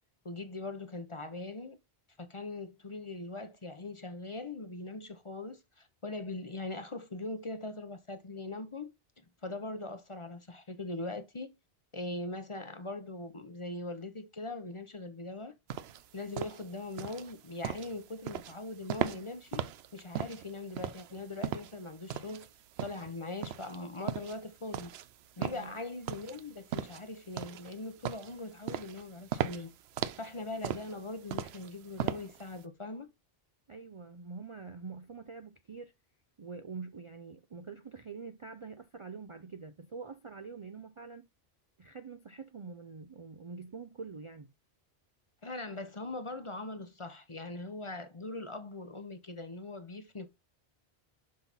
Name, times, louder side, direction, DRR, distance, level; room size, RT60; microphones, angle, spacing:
voice 1, 0.2-1.8 2.2-8.9 9.4-11.5 11.9-15.5 16.1-19.6 19.9-22.5 22.8-24.9 25.4-29.7 30.1-33.1 45.4-50.3, left 2 dB, 35° left, 0.7 m, -41 dB
sound 1, 15.7-32.6, right 9 dB, 80° right, 0.8 m, -38 dB
voice 2, 25.4-25.7 33.7-35.9 36.4-41.3 41.8-44.5, right 5 dB, 45° right, 0.4 m, -45 dB
6.3 x 5.7 x 4.0 m
omnidirectional pair, 1.1 m